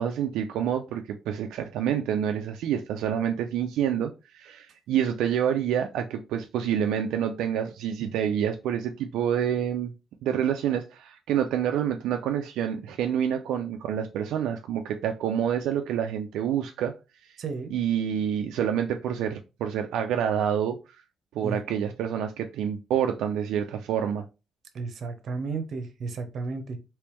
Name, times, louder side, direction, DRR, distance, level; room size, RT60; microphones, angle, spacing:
voice 1, 0.0-9.9 10.2-16.9 17.2-17.3 17.7-21.0 21.3-24.2, right 9 dB, 90° right, 0.3 m, -27 dB
voice 2, 17.4-17.7 21.4-21.6 24.7-26.8, right 4 dB, 60° right, 0.7 m, -33 dB
3.3 x 3.0 x 3.0 m
cardioid pair, 90°, 0 cm